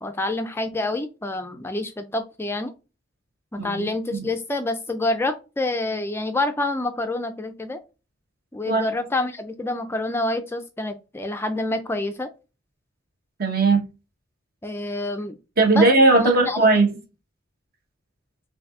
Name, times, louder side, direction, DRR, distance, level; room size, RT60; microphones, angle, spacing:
voice 1, 0.0-2.7 3.5-7.8 8.5-12.3 14.6-15.4 15.7-15.9 16.1-16.6, left 2 dB, 10° left, 0.3 m, -27 dB
voice 2, 3.6-4.3 8.7-8.9 13.4-13.8 15.6-16.9, right 2 dB, 50° right, 1.2 m, -18 dB
5.6 x 2.6 x 2.5 m
head